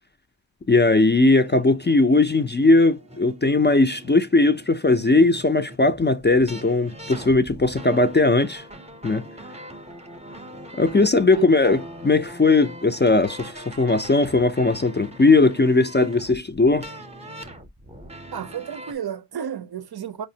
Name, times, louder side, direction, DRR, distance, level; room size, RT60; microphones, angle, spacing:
voice 1, 0.7-8.6 9.0-9.2 10.8-16.9, left 3 dB, 25° left, 0.4 m, -19 dB
sound 1, 1.4-18.9, equal, 15° right, 0.6 m, -41 dB
voice 2, 11.4-11.8 18.3-20.3, right 9 dB, 55° right, 0.5 m, -32 dB
4.9 x 2.0 x 2.7 m
wide cardioid pair, 65°, 46 cm